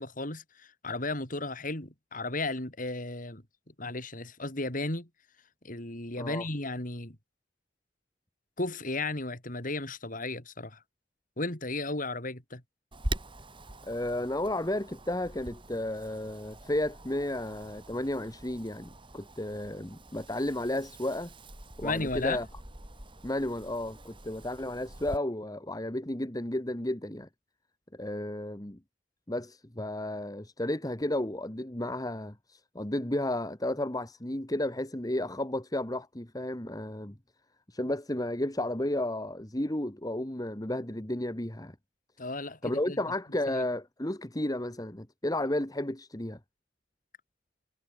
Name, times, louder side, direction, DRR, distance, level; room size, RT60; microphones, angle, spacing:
voice 1, 0.0-3.4 3.8-5.1 5.6-7.2 8.6-10.8 11.4-12.6 21.8-22.4 42.2-43.0 43.5-43.7, left 2 dB, 45° left, 4.2 m, -34 dB
Wind, 12.9-25.2, right 1 dB, 25° right, 4.0 m, -44 dB
voice 2, 13.8-21.3 21.8-22.5 23.2-27.3 27.9-28.8 29.3-37.2 37.7-41.7 42.6-46.4, left 1 dB, 20° left, 1.7 m, -33 dB
head